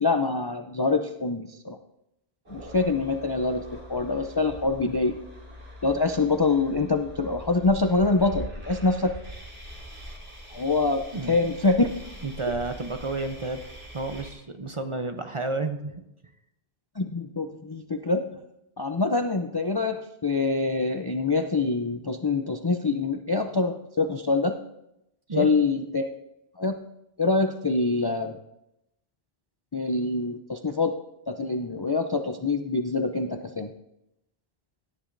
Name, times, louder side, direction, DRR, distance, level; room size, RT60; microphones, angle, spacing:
voice 1, 0.0-1.8 2.5-5.2 5.8-9.1 10.5-11.9 17.0-18.3 18.8-24.6 25.4-26.1 26.6-26.8 27.2-28.4 29.7-31.0 31.3-33.7, left 3 dB, 35° left, 6 dB, 0.4 m, -25 dB
sound 1, 2.5-14.3, equal, 80° right, 3.1 m, -43 dB
voice 2, 12.2-13.6 13.9-16.0 25.3-25.5, right 3 dB, 35° right, 7 dB, 0.6 m, -31 dB
17.5 x 10.0 x 2.6 m, 0.84 s
omnidirectional pair, 1.1 m